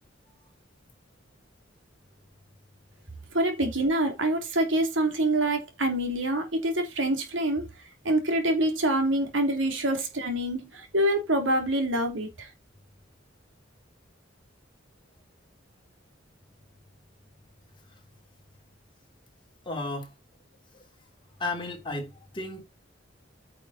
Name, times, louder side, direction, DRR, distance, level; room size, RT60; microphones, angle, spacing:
voice 1, 3.3-7.7 8.0-12.5, right 1 dB, 75° right, 3.1 m, -26 dB
voice 2, 19.6-20.1 21.4-22.6, left 2 dB, 25° left, 3.4 m, -33 dB
9.3 x 6.3 x 4.3 m
head